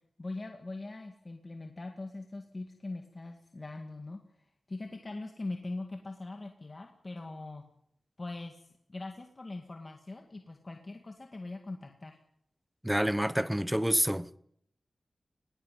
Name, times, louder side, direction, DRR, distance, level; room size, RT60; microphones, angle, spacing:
voice 1, 0.2-7.6 8.2-12.2, left 2 dB, 35° left, 2.1 m, -42 dB
voice 2, 12.8-14.4, equal, 5° right, 0.8 m, -28 dB
20.5 x 16.5 x 9.3 m
wide cardioid pair, 125°, 0 cm